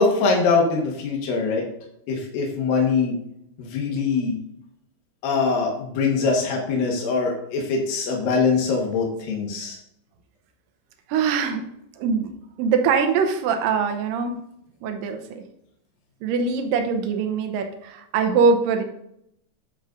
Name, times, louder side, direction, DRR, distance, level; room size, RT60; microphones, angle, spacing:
voice 1, 0.0-1.6 2.1-3.1 3.7-4.3 5.2-9.8, left 4 dB, 80° left, -1 dB, 3.1 m, -22 dB
voice 2, 11.1-11.6 12.0-12.3 12.6-14.4 14.8-15.4 16.2-18.8, right 5 dB, 85° right, 5 dB, 2.6 m, -22 dB
11.0 x 7.0 x 2.5 m, 0.75 s
omnidirectional pair, 4.0 m